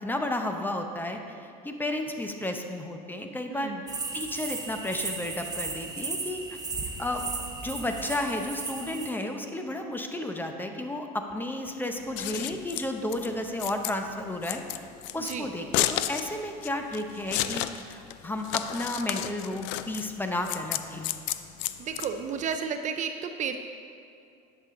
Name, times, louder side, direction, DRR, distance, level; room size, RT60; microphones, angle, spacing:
voice 1, 0.0-3.7 4.1-6.4 7.0-7.3 7.6-14.6 15.1-21.1, left 1 dB, 10° left, 4 dB, 0.7 m, -32 dB
voice 2, 3.5-3.8 15.1-15.5 21.8-23.6, right 6 dB, 40° right, 7 dB, 0.5 m, -32 dB
sound 1, 3.9-9.1, right 4 dB, 20° right, 1.0 m, -35 dB
Scissors, 12.0-22.6, left 13 dB, 70° left, 0.4 m, -32 dB
10.5 x 6.8 x 3.8 m, 2.5 s
supercardioid pair, 110°, 20 cm